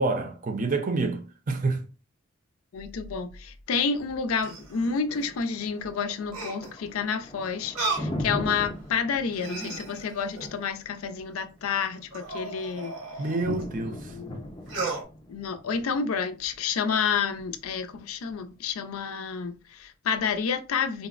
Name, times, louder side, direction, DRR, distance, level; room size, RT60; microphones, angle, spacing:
voice 1, 0.0-1.9 13.2-14.1, right 3 dB, 40° right, 0.5 m, -28 dB
voice 2, 2.7-12.9 13.8-14.4 15.3-21.1, left 6 dB, 85° left, 0.4 m, -29 dB
sound 1, 3.9-5.3 6.3-6.8 7.7-8.1 8.7-8.8 9.3-10.6 12.1-13.7 14.7-15.0, right 3 dB, 80° right, 1.1 m, -35 dB
Thunder, 4.6-18.6, left 1 dB, 20° left, 0.5 m, -40 dB
4.0 x 2.0 x 2.4 m
head